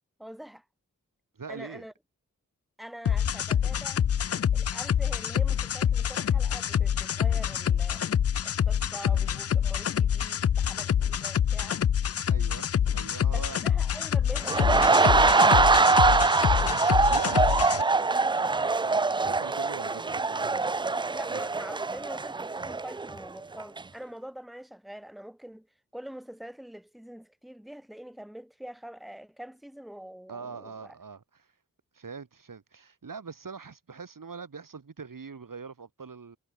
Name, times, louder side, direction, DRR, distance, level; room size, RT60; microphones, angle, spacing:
voice 1, 0.2-0.6 1.5-1.9 2.8-4.1 4.5-8.1 8.4-11.8 13.3-16.5 21.1-25.7 25.9-30.9, right 1 dB, ahead, 1.6 m, -44 dB
voice 2, 1.4-1.9 12.3-13.6 17.1-20.7 21.3-21.5 30.3-31.5 31.9-36.4, right 5 dB, 80° right, 5.2 m, -43 dB
sound 1, 3.1-17.8, left 9 dB, 50° left, 0.4 m, -26 dB
sound 2, 14.4-23.3 23.6-23.8, right 3 dB, 15° right, 0.3 m, -23 dB
cardioid pair, 45°, 33 cm